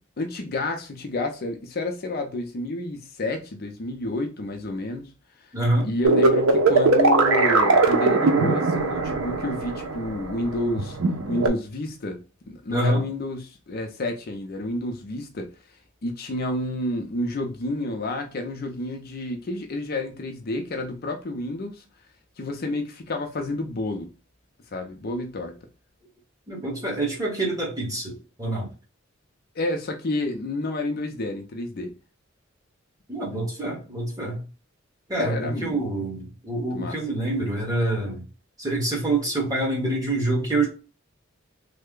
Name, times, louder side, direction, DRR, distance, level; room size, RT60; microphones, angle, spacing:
voice 1, 0.2-5.1 5.8-11.0 11.3-12.2 12.5-15.5 16.0-21.8 22.4-24.1 24.7-25.5 29.6-31.9 35.2-35.8 36.7-37.0, left 2 dB, 50° left, 0.5 m, -30 dB
voice 2, 5.5-5.9 12.7-13.0 26.5-28.7 33.1-34.4 35.1-38.2 38.6-40.7, right 2 dB, 20° right, 1.3 m, -26 dB
sound 1, 6.0-11.5, right 3 dB, 85° right, 0.6 m, -20 dB
3.2 x 2.1 x 3.6 m
head